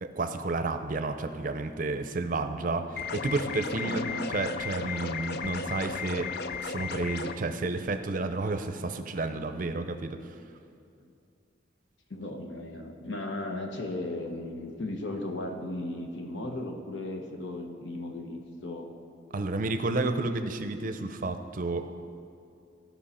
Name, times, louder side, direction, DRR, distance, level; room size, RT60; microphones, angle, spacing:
voice 1, 0.0-6.3 6.6-10.4 19.3-21.9, right 3 dB, 45° right, 8 dB, 0.5 m, -31 dB
sound 1, 3.0-7.4, left 5 dB, 60° left, 0.4 m, -35 dB
voice 2, 3.7-4.3 12.1-18.9, left 2 dB, 80° left, 3 dB, 1.1 m, -36 dB
15.0 x 5.6 x 4.3 m, 2.5 s
head